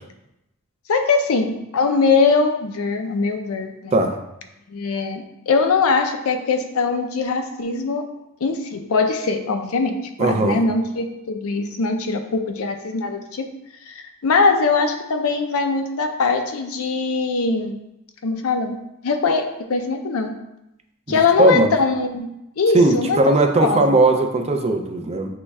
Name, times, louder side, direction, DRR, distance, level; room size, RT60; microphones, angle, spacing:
voice 1, 0.9-4.0 4.7-8.0 8.4-13.4 13.9-17.8 18.2-18.8 19.0-20.3 21.1-22.3 22.6-23.4 23.6-24.0, left 4 dB, 75° left, 6 dB, 0.5 m, -21 dB
voice 2, 10.2-10.6 21.1-21.7 22.7-25.3, right 2 dB, 30° right, 5 dB, 0.4 m, -18 dB
6.7 x 3.1 x 2.3 m, 0.87 s
head